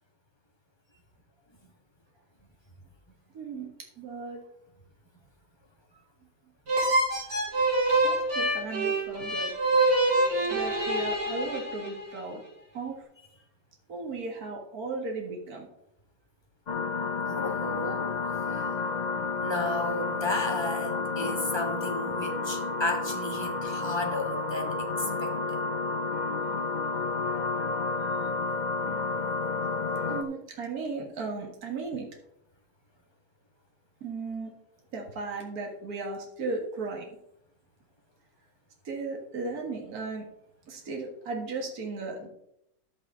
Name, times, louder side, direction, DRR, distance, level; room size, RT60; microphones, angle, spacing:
voice 1, 3.3-4.4 7.9-9.5 10.5-12.4 12.7-13.0 13.9-15.7 30.0-32.1 34.0-34.5 34.9-37.1 38.8-40.3 40.7-42.3, right 3 dB, 65° right, 1 dB, 2.1 m, -36 dB
sound 1, 6.7-12.2, right 2 dB, 85° right, 4.1 m, -26 dB
sound 2, 16.7-30.2, left 3 dB, 70° left, 0.4 m, -31 dB
voice 2, 17.2-18.7 19.4-25.6, left 2 dB, 15° left, 1 dB, 1.6 m, -33 dB
11.0 x 8.9 x 3.7 m, 0.78 s
omnidirectional pair, 1.8 m